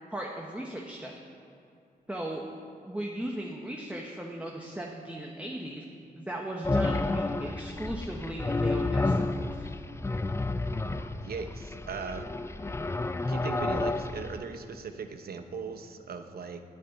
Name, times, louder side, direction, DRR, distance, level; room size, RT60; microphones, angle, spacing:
voice 1, 0.1-1.1 2.1-2.4 2.8-5.8 6.2-9.7, right 1 dB, 10° right, -1 dB, 1.3 m, -37 dB
sound 1, 6.6-14.4, left 2 dB, 15° left, 0.5 m, -30 dB
voice 2, 11.2-12.3 13.3-16.6, right 5 dB, 65° right, 7 dB, 1.0 m, -38 dB
9.8 x 8.6 x 9.1 m, 2.5 s
cardioid pair, 85°, 17 cm